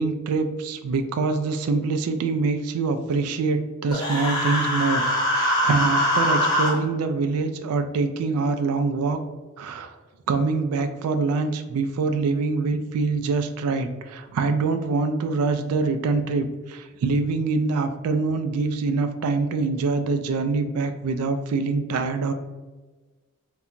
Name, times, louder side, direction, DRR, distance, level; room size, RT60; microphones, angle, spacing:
voice 1, 0.0-9.2 9.6-10.0 10.3-22.3, right 4 dB, 85° right, 8 dB, 0.3 m, -25 dB
Human voice, 3.9-6.7, equal, 20° left, 0.6 m, -22 dB
2.8 x 2.2 x 2.4 m, 1.2 s
head